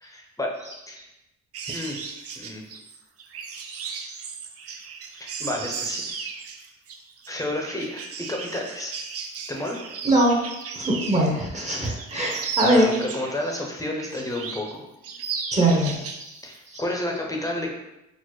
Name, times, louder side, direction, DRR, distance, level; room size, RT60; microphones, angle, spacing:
voice 1, 0.0-0.5 0.9-1.1 1.6-2.6 5.1-6.1 7.3-9.0 9.5-9.8 12.8-14.8 16.4-17.7, left 1 dB, 10° left, 0 dB, 0.7 m, -31 dB
sound 1, 1.5-11.4 11.7-13.6 14.0-14.7 15.0-16.3 16.6-16.8, right 5 dB, 50° right, 0.4 m, -35 dB
voice 2, 10.0-10.4 10.7-12.9 15.5-16.3 16.7-16.8, right 1 dB, 25° right, -2 dB, 0.8 m, -22 dB
4.2 x 2.0 x 3.1 m, 0.93 s
cardioid pair, 90°, 30 cm